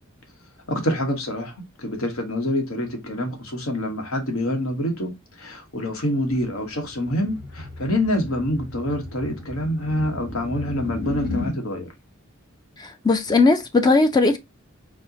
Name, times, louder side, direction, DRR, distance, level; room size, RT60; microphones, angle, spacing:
voice 1, 0.7-11.9, left 1 dB, 80° left, 1.1 m, -26 dB
sound 1, 6.3-11.6, left 2 dB, 45° left, 1.1 m, -34 dB
voice 2, 12.8-14.4, left 3 dB, 20° left, 0.4 m, -18 dB
4.2 x 2.0 x 2.6 m
head